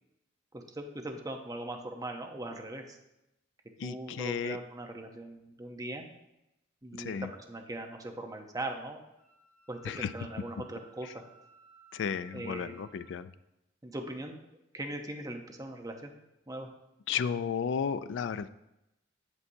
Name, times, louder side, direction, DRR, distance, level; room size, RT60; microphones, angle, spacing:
voice 1, 0.5-3.0 3.8-6.1 6.8-9.0 9.7-11.3 12.3-12.7 13.8-14.4 14.7-16.1 16.5-16.7, right 1 dB, 20° right, 3 dB, 0.7 m, -40 dB
voice 2, 3.8-4.6 7.0-7.3 9.8-10.1 11.9-13.3 17.1-18.5, left 7 dB, 65° left, 13 dB, 0.3 m, -33 dB
Wind instrument woodwind instrument, 9.2-13.2, right 4 dB, 15° left, 1.6 m, -58 dB
8.4 x 7.6 x 2.7 m, 0.90 s
head